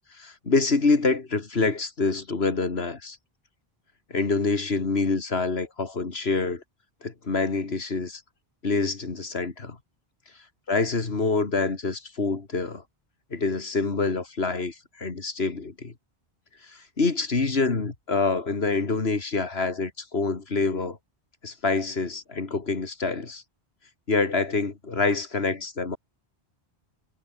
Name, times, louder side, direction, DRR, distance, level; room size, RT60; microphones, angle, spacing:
voice 1, 0.1-3.2 4.1-6.6 7.0-8.2 8.6-9.8 10.7-12.8 13.3-15.9 16.6-21.0 21.4-23.4 24.1-26.0, left 3 dB, 75° left, 2.6 m, -26 dB
omnidirectional pair, 1.1 m